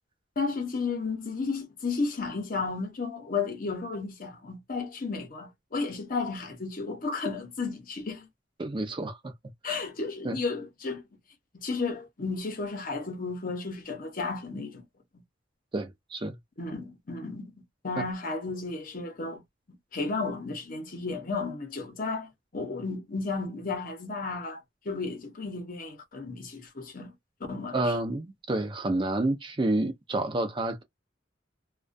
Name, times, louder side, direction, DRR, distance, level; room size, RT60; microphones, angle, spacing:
voice 1, 0.4-8.3 9.6-11.0 11.5-14.8 16.6-17.5 17.8-19.4 19.9-24.6 24.9-27.1 27.5-27.9, left 4 dB, 50° left, 0.8 m, -33 dB
voice 2, 8.6-9.3 9.6-9.8 10.2-10.4 15.7-16.4 27.7-30.8, right 2 dB, 25° right, 0.5 m, -29 dB
2.3 x 2.2 x 2.5 m
head